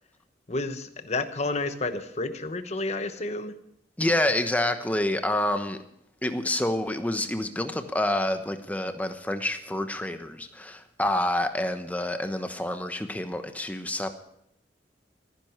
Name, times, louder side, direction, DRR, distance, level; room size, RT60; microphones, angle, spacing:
voice 1, 0.5-3.5, left 2 dB, 40° left, 9 dB, 1.0 m, -30 dB
voice 2, 4.0-5.8 6.2-14.1, left 1 dB, 10° left, 8 dB, 1.0 m, -28 dB
14.5 x 10.5 x 6.7 m, 0.77 s
head